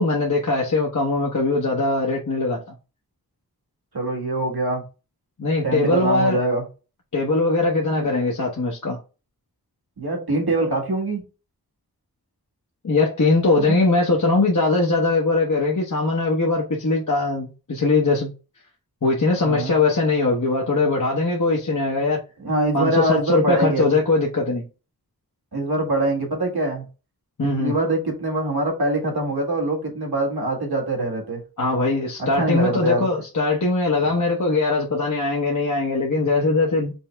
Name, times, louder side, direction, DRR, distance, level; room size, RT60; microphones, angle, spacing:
voice 1, 0.0-2.6 5.4-6.4 7.1-9.0 12.8-18.3 19.0-22.2 22.7-24.6 27.4-27.7 31.6-36.9, left 3 dB, 55° left, 0.9 m, -21 dB
voice 2, 3.9-4.8 5.6-6.6 7.9-8.1 10.0-11.2 13.6-13.8 19.4-19.7 22.4-24.0 25.5-26.8 27.6-31.4 32.2-33.1, right 2 dB, 85° right, 1.6 m, -23 dB
5.3 x 2.0 x 3.3 m
wide cardioid pair, 45°, 37 cm